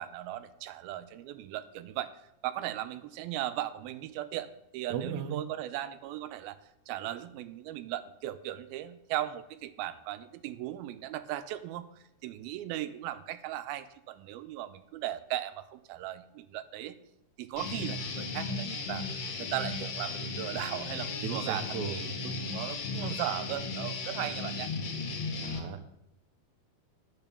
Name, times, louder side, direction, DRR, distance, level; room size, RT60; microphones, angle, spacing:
voice 1, 0.0-2.1 2.4-6.6 6.9-17.0 17.4-24.7, right 13 dB, 85° right, 10 dB, 2.5 m, -37 dB
voice 2, 4.9-5.4 21.2-22.0 25.4-25.8, right 7 dB, 70° right, 6 dB, 1.9 m, -35 dB
Guitar, 17.6-25.6, left 3 dB, 55° left, 2.3 m, -36 dB
11.0 x 5.8 x 6.8 m, 0.82 s
omnidirectional pair, 4.2 m